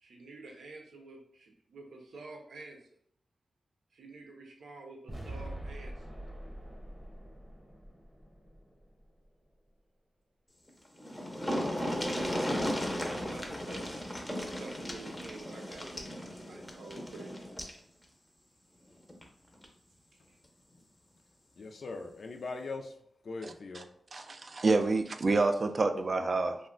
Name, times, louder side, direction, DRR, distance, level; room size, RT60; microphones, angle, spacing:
voice 1, 0.0-2.8 3.9-6.1 12.4-13.9 14.4-17.4 20.1-20.4, right 3 dB, 85° right, 1 dB, 0.6 m, -49 dB
sound 1, 5.1-9.2, right 1 dB, 20° right, 0.8 m, -44 dB
sound 2, 10.7-10.8 11.0-17.8 19.1-19.2 19.6-19.7, equal, 15° left, 0.5 m, -35 dB
voice 2, 21.6-23.0 23.2-23.9, left 3 dB, 65° left, 4 dB, 0.3 m, -40 dB
voice 3, 23.4-23.8 24.1-26.6, right 3 dB, 50° right, 7 dB, 0.3 m, -28 dB
2.4 x 2.1 x 3.7 m, 0.66 s
cardioid pair, 80°, 0 cm